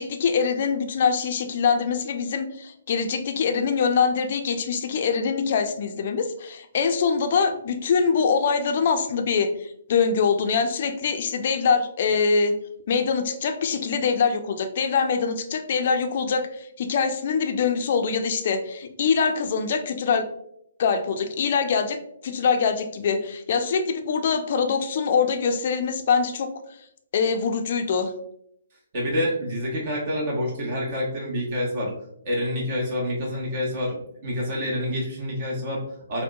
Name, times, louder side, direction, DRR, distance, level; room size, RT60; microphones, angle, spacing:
voice 1, 0.0-12.5 12.9-20.3 20.8-22.0 22.2-26.5 27.1-28.1, left 5 dB, 50° left, 7 dB, 0.4 m, -24 dB
voice 2, 28.9-31.9 32.2-36.2, left 1 dB, 40° right, -3 dB, 1.0 m, -27 dB
4.3 x 2.1 x 2.3 m, 0.72 s
figure-of-eight pair, 135°, 0 cm